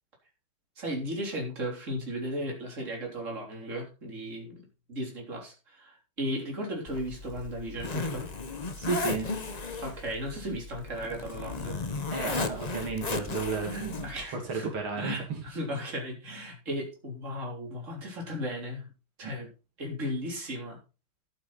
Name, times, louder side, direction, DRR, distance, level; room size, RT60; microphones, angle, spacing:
voice 1, 0.8-8.3 9.8-11.8 13.7-14.7 15.0-18.9 19.2-19.5 19.8-20.8, equal, 35° right, 0 dB, 3.8 m, -36 dB
Zipper (clothing), 6.9-14.2, left 3 dB, 40° left, 0.5 m, -35 dB
voice 2, 8.8-9.3 12.1-15.4 19.2-19.3, right 4 dB, 75° right, 2 dB, 3.2 m, -33 dB
11.5 x 9.4 x 4.1 m, 0.32 s
omnidirectional pair, 2.3 m